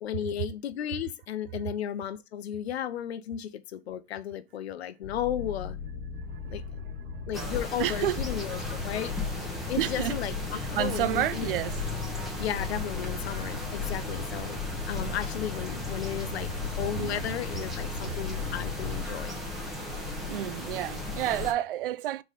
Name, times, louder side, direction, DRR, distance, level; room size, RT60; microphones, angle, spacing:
voice 1, 0.0-5.8 6.5-6.6 7.3-9.2 9.6-11.5 12.4-19.4, left 10 dB, 85° left, 0.9 m, -34 dB
sound 1, 5.0-19.0, left 6 dB, 35° left, 1.4 m, -38 dB
voice 2, 6.2-6.9 7.1-7.2 7.8-8.2 9.8-10.2 10.5-11.7 17.0-17.2 20.3-22.2, right 13 dB, 60° right, 0.5 m, -30 dB
sound 2, 7.3-21.5, left 2 dB, ahead, 0.9 m, -36 dB
5.6 x 4.1 x 5.0 m
supercardioid pair, 170°, 31 cm